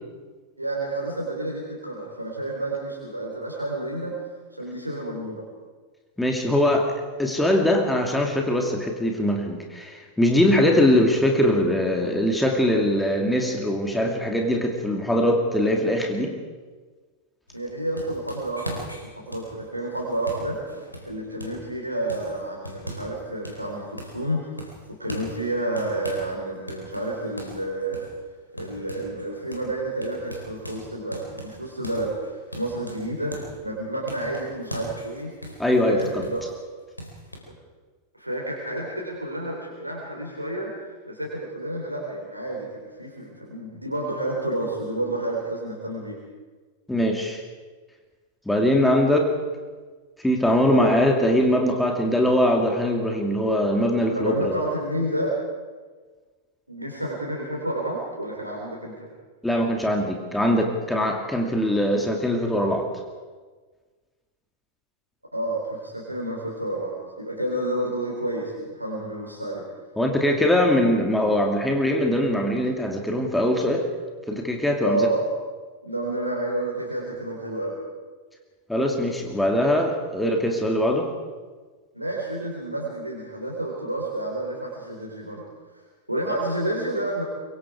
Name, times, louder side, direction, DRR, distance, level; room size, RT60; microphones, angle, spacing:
voice 1, 0.6-4.2 4.5-5.4 17.5-20.6 21.0-24.4 24.9-28.0 28.5-33.4 33.6-35.3 35.9-36.4 38.2-40.7 41.0-46.2 50.7-50.9 54.1-55.4 56.7-59.0 65.3-69.6 74.8-75.3 75.8-77.8 81.9-85.4 86.1-87.2, right 1 dB, 85° right, -2 dB, 3.9 m, -30 dB
voice 2, 6.2-16.3 35.6-36.3 46.9-47.4 48.5-49.3 50.2-54.6 59.4-62.9 70.0-73.9 74.3-75.1 78.7-81.1, left 1 dB, 5° left, 2 dB, 2.7 m, -22 dB
sound 1, 17.5-21.7 22.1-23.2 23.4-24.3 24.6-26.3 26.7-29.3 29.5-29.7 30.0-33.6 34.1-36.5 37.0-37.4, equal, 90° left, 4.3 m, -39 dB
24.5 x 23.5 x 4.8 m, 1.4 s
figure-of-eight pair, 90°, 0 cm